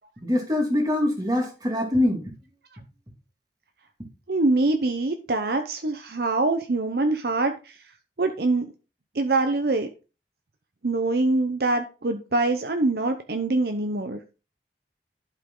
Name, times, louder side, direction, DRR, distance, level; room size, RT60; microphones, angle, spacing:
voice 1, 0.2-2.2, left 1 dB, 20° right, 1 dB, 2.4 m, -23 dB
voice 2, 4.3-7.5 8.2-8.6 9.1-9.9 10.8-14.2, right 2 dB, 60° right, 6 dB, 0.8 m, -24 dB
11.5 x 5.7 x 3.8 m, 0.32 s
head